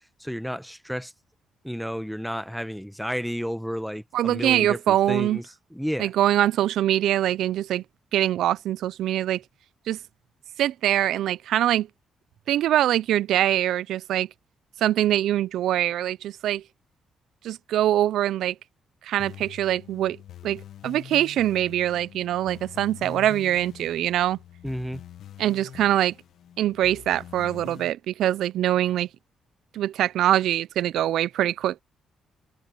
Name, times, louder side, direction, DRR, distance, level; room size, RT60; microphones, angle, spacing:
voice 1, 0.2-1.1 1.6-5.4 5.7-6.1 24.6-25.0, equal, ahead, 1.0 m, -31 dB
voice 2, 4.1-5.4 6.0-7.8 8.1-9.4 9.9-10.0 10.6-11.9 12.5-14.3 14.8-16.6 17.4-18.6 19.0-20.2 20.4-24.4 25.4-26.1 26.6-29.1 29.7-31.8, right 12 dB, 80° right, 0.5 m, -23 dB
sound 1, 19.2-27.9, left 10 dB, 75° left, 1.4 m, -44 dB
open air
cardioid pair, 95°, 0 cm